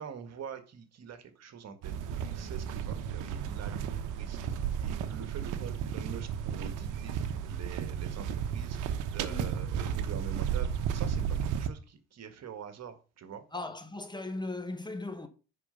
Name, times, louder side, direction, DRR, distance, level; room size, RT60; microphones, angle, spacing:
voice 1, 0.0-1.9 2.2-4.5 4.8-8.8 9.1-13.4, right 7 dB, 50° right, 1.7 m, -45 dB
sound 1, 1.8-11.7, right 8 dB, 65° right, 1.0 m, -33 dB
voice 2, 9.3-9.7 13.5-15.3, left 2 dB, 15° left, 1.4 m, -38 dB
9.9 x 4.4 x 5.6 m
hypercardioid pair, 50°, 33 cm